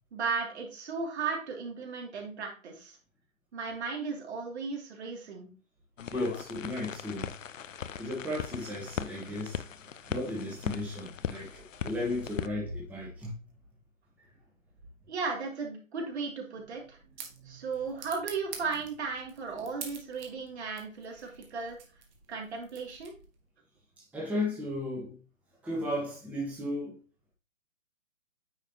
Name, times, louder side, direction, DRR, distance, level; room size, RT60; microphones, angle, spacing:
voice 1, 0.1-3.0 3.5-5.5 15.1-17.0 17.4-21.8 22.3-23.1, right 5 dB, 55° right, 2.7 m, -35 dB
sound 1, 6.0-12.5, left 8 dB, 70° left, 0.7 m, -39 dB
voice 2, 6.1-7.4 8.0-9.6 10.1-13.3 14.2-14.3 19.5-19.7 24.0-25.2 25.6-27.0, left 1 dB, 5° right, 1.3 m, -35 dB
sound 2, 16.6-23.5, right 7 dB, 35° right, 1.4 m, -48 dB
9.3 x 4.9 x 2.9 m
figure-of-eight pair, 130°, 40 cm